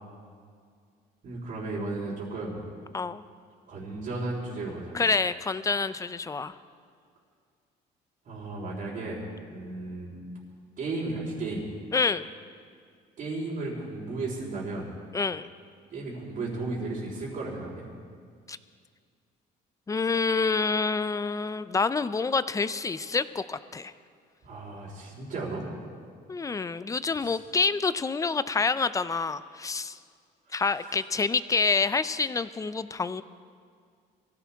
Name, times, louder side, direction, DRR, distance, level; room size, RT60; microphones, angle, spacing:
voice 1, 1.2-2.6 3.7-5.0 8.2-9.2 9.5-10.2 10.8-11.7 13.2-14.9 15.9-17.8 24.4-25.7 27.2-27.4 30.5-31.0, right 3 dB, 55° right, -8 dB, 4.1 m, -34 dB
voice 2, 4.9-6.5 11.9-12.3 15.1-15.5 18.5-18.6 19.9-23.9 26.3-30.0 30.5-33.2, left 4 dB, 20° left, 14 dB, 0.5 m, -27 dB
23.0 x 15.5 x 3.6 m, 2.1 s
cardioid pair, 110°, 17 cm